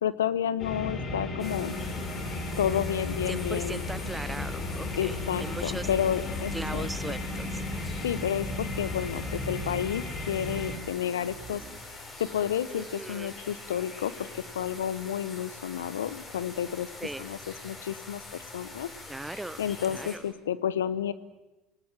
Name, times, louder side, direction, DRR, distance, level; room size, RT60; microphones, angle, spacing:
voice 1, 0.0-1.8 2.6-3.8 5.0-7.2 8.0-16.9 17.2-17.4 17.6-18.2 18.5-18.9 19.6-21.1, left 9 dB, 85° left, 16 dB, 0.9 m, -31 dB
sound 1, 0.6-10.8, left 2 dB, 50° left, 4.1 m, -34 dB
sound 2, 1.4-20.2, left 2 dB, 30° left, 6.9 m, -44 dB
voice 2, 3.3-5.9 6.5-7.6 12.7-13.3 17.0-17.3 19.1-19.6 19.9-20.2, right 2 dB, 10° right, 15 dB, 1.2 m, -38 dB
sound 3, 3.9-12.8, right 6 dB, 30° right, 3.1 m, -48 dB
27.5 x 18.5 x 7.6 m, 1.0 s
hypercardioid pair, 70°, 0 cm